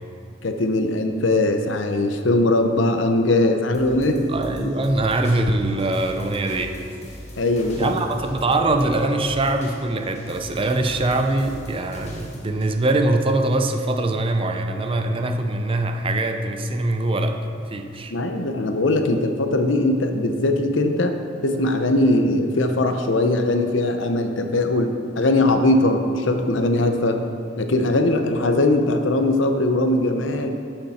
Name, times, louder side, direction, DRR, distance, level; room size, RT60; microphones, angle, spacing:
voice 1, 0.4-4.2 7.4-7.9 18.1-21.2 21.4-27.2 27.6-30.5, left 2 dB, 85° left, 6 dB, 0.8 m, -20 dB
sound 1, 3.7-13.8 14.2-14.3, equal, 35° left, 1.4 m, -41 dB
voice 2, 4.3-6.8 7.8-18.1, right 2 dB, 30° right, 5 dB, 0.6 m, -23 dB
11.5 x 6.7 x 4.3 m, 2.4 s
head